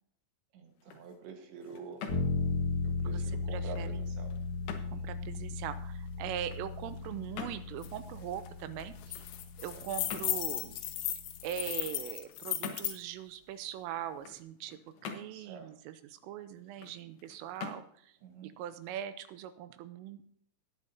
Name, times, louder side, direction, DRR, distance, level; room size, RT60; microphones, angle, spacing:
voice 1, 0.5-2.0 2.8-4.3 4.8-5.1 9.7-9.8 15.3-15.7 18.2-18.5, right 5 dB, 70° right, 3 dB, 3.5 m, -47 dB
sound 1, 0.7-19.5, left 7 dB, 70° left, 2.5 m, -49 dB
sound 2, 2.1-11.8, left 4 dB, 50° left, 2.2 m, -37 dB
voice 2, 3.0-4.0 4.9-9.2 9.6-10.8 11.4-18.2 18.4-20.2, right 11 dB, 90° right, 11 dB, 3.3 m, -41 dB
sound 3, 7.8-7.9 8.2-8.5 8.8-13.0, left 13 dB, 85° left, 3.6 m, -36 dB
19.0 x 8.4 x 2.8 m, 0.65 s
omnidirectional pair, 5.8 m